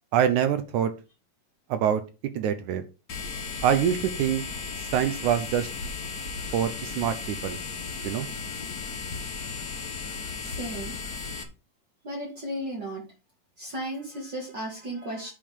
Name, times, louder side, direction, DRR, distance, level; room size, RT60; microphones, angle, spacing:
voice 1, 0.1-0.9 1.7-2.0 2.3-2.8 3.6-4.4 4.8-5.7 6.5-7.6 8.0-8.3, right 9 dB, 75° right, 10 dB, 2.0 m, -25 dB
sound 1, 3.1-11.4, left 4 dB, 75° left, 0.8 m, -35 dB
voice 2, 10.4-11.0 12.0-13.0 13.6-15.3, right 1 dB, 35° right, -2 dB, 2.8 m, -34 dB
8.7 x 5.4 x 5.3 m, 0.30 s
omnidirectional pair, 4.0 m